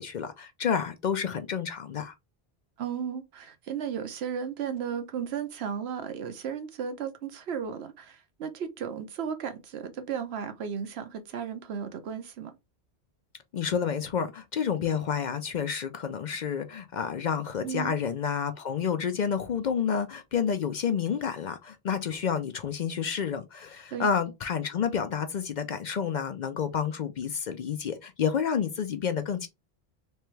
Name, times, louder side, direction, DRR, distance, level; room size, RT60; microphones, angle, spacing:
voice 1, 0.0-2.1 13.5-29.5, left 7 dB, 55° left, 0.5 m, -29 dB
voice 2, 2.8-12.5 17.6-18.0 23.9-24.1, right 7 dB, 80° right, 1.0 m, -35 dB
3.3 x 3.3 x 3.1 m
omnidirectional pair, 1.0 m